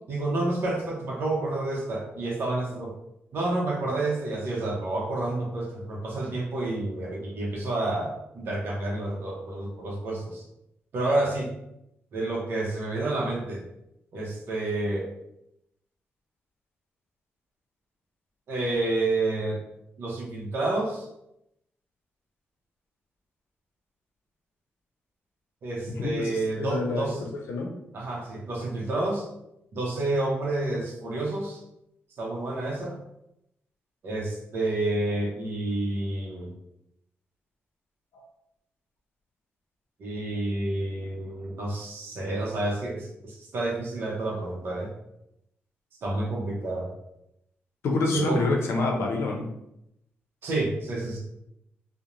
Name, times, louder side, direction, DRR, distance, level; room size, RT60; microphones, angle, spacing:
voice 1, 0.1-2.9 3.3-10.4 10.9-11.5 12.1-13.6 14.1-15.0 18.5-19.6 20.0-21.1 25.6-27.2 27.9-29.3 29.7-31.6 32.2-33.0 34.0-36.5 40.0-44.9 46.0-46.9 48.1-48.4 50.4-51.2, right 2 dB, 60° right, -3 dB, 0.6 m, -29 dB
voice 2, 25.9-26.3 26.6-27.1 27.5-27.7 38.1-38.2 47.8-49.5, left 3 dB, 85° left, 1 dB, 0.6 m, -27 dB
2.5 x 2.0 x 3.0 m, 0.81 s
wide cardioid pair, 160°, 4 cm